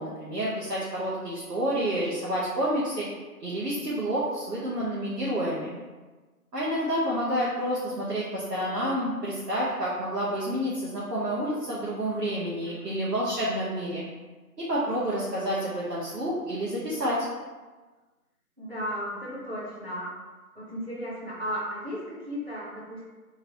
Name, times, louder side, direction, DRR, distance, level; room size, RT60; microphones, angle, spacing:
voice 1, 0.0-3.1 3.4-5.8 6.5-14.0 14.6-17.3, equal, 85° right, -7 dB, 0.9 m, -29 dB
voice 2, 18.6-20.2 20.5-23.0, equal, 45° right, -7 dB, 0.6 m, -35 dB
2.9 x 2.5 x 2.8 m, 1.3 s
figure-of-eight pair, 170°, 47 cm